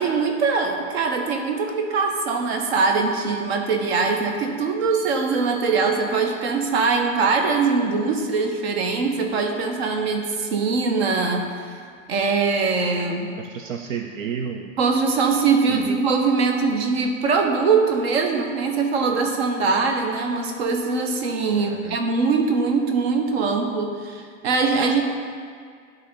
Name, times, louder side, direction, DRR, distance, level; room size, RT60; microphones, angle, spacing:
voice 1, 0.0-11.8 12.1-13.4 14.8-25.0, right 4 dB, 50° right, 4 dB, 0.9 m, -22 dB
sound 1, 4.9-6.8, right 7 dB, ahead, 1.8 m, -44 dB
voice 2, 13.4-14.7 15.7-16.0 21.5-22.0, right 7 dB, 70° right, 4 dB, 0.6 m, -31 dB
11.0 x 3.9 x 3.7 m, 2.1 s
hypercardioid pair, 150°, 41 cm